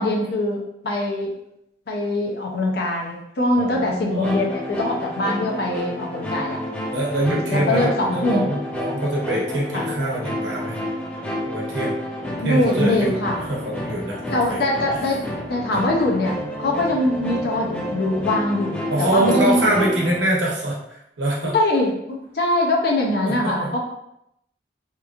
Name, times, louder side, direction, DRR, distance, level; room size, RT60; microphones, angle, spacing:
voice 1, 0.0-1.3 1.9-6.6 7.5-8.4 9.7-9.9 12.4-13.4 14.3-15.2 15.5-19.8 21.5-23.8, left 1 dB, 55° left, -1 dB, 0.6 m, -22 dB
voice 2, 3.5-4.4 6.9-10.8 11.4-11.9 12.4-13.1 13.4-14.6 14.9-15.0 18.9-21.5 23.2-23.7, right 1 dB, 80° right, -3 dB, 0.9 m, -24 dB
sound 1, 4.2-20.2, left 1 dB, 5° left, 0.4 m, -30 dB
2.9 x 2.5 x 2.4 m, 0.79 s
head